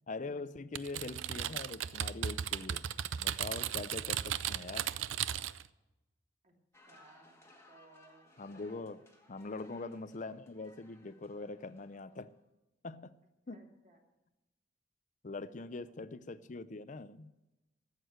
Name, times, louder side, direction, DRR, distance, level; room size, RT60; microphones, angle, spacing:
voice 1, 0.1-4.9 8.4-12.3 12.8-13.1 13.5-13.6 15.2-17.6, left 3 dB, 40° left, 0.6 m, -43 dB
Typing, 0.7-5.7, right 10 dB, 85° right, 0.5 m, -36 dB
sound 1, 6.7-12.4, left 2 dB, 15° left, 1.6 m, -63 dB
voice 2, 6.8-7.4 7.7-8.3 9.5-9.9 13.5-14.0 15.6-15.7, right 2 dB, 40° right, 2.9 m, -61 dB
14.0 x 8.4 x 7.8 m
head